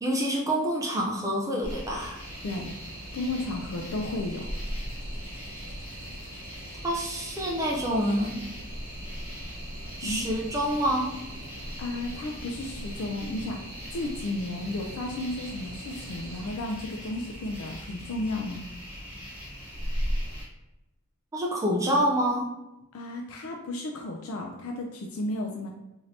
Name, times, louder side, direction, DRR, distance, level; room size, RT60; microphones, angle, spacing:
voice 1, 0.0-2.2 6.8-8.4 10.0-11.1 21.3-22.5, equal, 15° right, -2 dB, 0.4 m, -27 dB
sound 1, 1.6-20.4, equal, 25° left, 1.1 m, -39 dB
sound 2, 2.2-16.5, right 1 dB, 70° right, 0.7 m, -44 dB
voice 2, 2.4-2.7 3.1-4.4 10.0-10.2 11.6-18.7 22.9-25.8, left 2 dB, 75° left, 2 dB, 0.4 m, -33 dB
3.2 x 2.7 x 2.6 m, 0.94 s
head